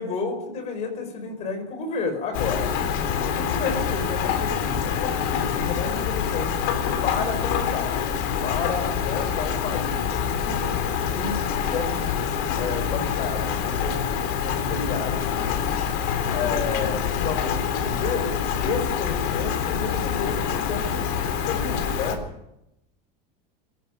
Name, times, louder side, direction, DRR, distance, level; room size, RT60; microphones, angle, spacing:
voice 1, 0.0-2.7 3.2-6.5 7.0-8.0 8.4-10.7 11.1-12.3 12.6-14.0 14.4-15.8 16.3-18.4 18.6-21.1 21.3-22.2, left 4 dB, 30° left, 6 dB, 5.4 m, -31 dB
Rain, 2.3-22.2, left 7 dB, 55° left, 3.8 m, -26 dB
22.0 x 15.0 x 8.9 m, 0.87 s
supercardioid pair, 170°, 21 cm